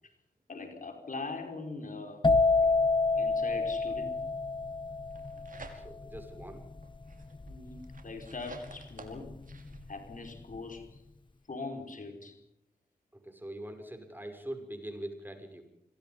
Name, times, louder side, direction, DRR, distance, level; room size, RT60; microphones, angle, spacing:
voice 1, 0.5-2.3 2.6-2.7 3.1-4.1 7.5-9.3 9.9-11.0 11.5-12.4, left 3 dB, 55° left, 5 dB, 5.0 m, -41 dB
sound 1, 2.2-9.8 10.1-10.6, left 3 dB, 30° left, 1.1 m, -29 dB
sound 2, 5.0-6.2 6.6-9.9, right 3 dB, 60° right, 5.1 m, -51 dB
voice 2, 5.7-6.6 13.2-15.6, right 1 dB, 10° right, 6 dB, 6.6 m, -42 dB
27.5 x 23.0 x 5.5 m, 0.78 s
cardioid pair, 50°, 16 cm